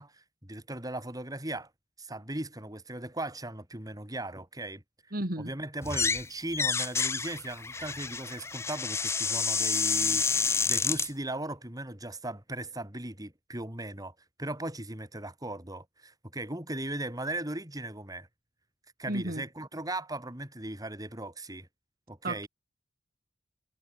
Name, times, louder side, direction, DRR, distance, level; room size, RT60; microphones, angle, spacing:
voice 1, 0.0-1.7 2.0-4.8 5.4-18.3 19.0-21.7 22.1-22.5, right 1 dB, 20° right, 5.3 m, -38 dB
voice 2, 5.1-5.5 19.1-19.4 22.2-22.5, right 1 dB, 50° right, 3.6 m, -33 dB
sound 1, 5.8-6.2 6.5-11.1, left 5 dB, 15° left, 0.4 m, -29 dB
head